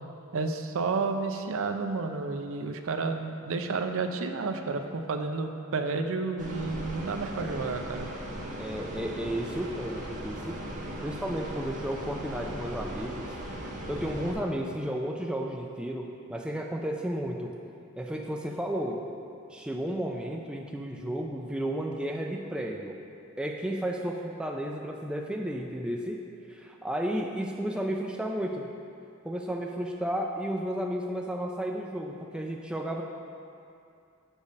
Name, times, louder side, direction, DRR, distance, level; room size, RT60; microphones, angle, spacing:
voice 1, 0.3-8.1, right 4 dB, 70° right, 7 dB, 0.5 m, -31 dB
sound 1, 6.4-14.3, right 1 dB, 35° right, 1.1 m, -38 dB
voice 2, 8.6-10.6 11.0-13.3 13.9-17.6 18.0-19.0 19.5-23.0 23.4-26.2 26.5-28.7 29.2-33.0, equal, 5° right, 1 dB, 0.3 m, -33 dB
7.1 x 5.4 x 5.2 m, 2.5 s
head